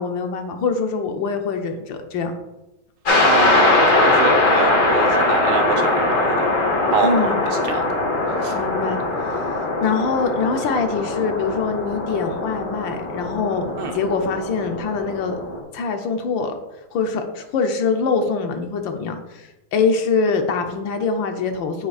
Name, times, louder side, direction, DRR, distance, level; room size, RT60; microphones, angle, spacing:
voice 1, 0.0-2.3 7.0-7.4 8.5-15.4 15.7-16.5 16.9-21.9, left 5 dB, 70° left, 5 dB, 1.5 m, -24 dB
sound 1, 3.0-15.6, left 2 dB, 40° left, 1.7 m, -21 dB
voice 2, 3.2-6.5 6.9-8.0 8.4-8.6 13.8-14.0, right 5 dB, 85° right, 4 dB, 1.7 m, -25 dB
8.1 x 7.8 x 2.4 m, 0.98 s
omnidirectional pair, 2.2 m